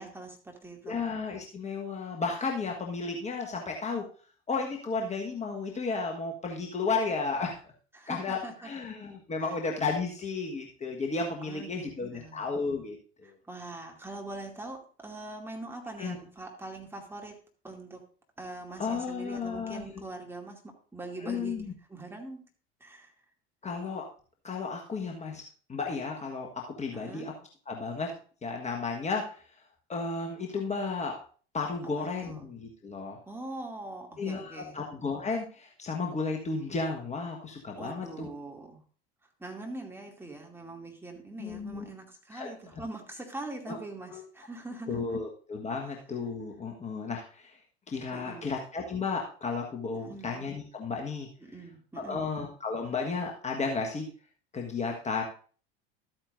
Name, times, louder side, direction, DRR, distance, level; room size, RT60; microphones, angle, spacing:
voice 1, 0.0-1.0 7.9-8.7 11.4-12.5 13.2-17.4 17.6-18.0 18.4-22.4 22.8-23.1 26.9-27.3 31.8-32.5 33.3-34.8 37.7-38.8 39.4-45.0 48.1-48.5 49.9-50.3 51.4-52.3, right 2 dB, 10° right, 1 dB, 2.4 m, -43 dB
voice 2, 0.8-4.0 4.5-7.6 8.1-13.0 13.2-13.3 16.0-16.2 18.8-20.0 21.2-21.7 23.6-24.1 24.4-25.4 25.7-27.3 27.7-28.1 28.4-29.4 29.9-31.2 31.5-33.2 34.2-38.3 41.4-41.9 42.3-42.5 43.7-43.8 44.1-44.2 44.9-47.6 47.9-51.3 52.0-54.1 54.5-55.2, left 4 dB, 25° left, 1 dB, 1.4 m, -33 dB
13.0 x 8.8 x 2.6 m, 0.41 s
figure-of-eight pair, 70°, 30 cm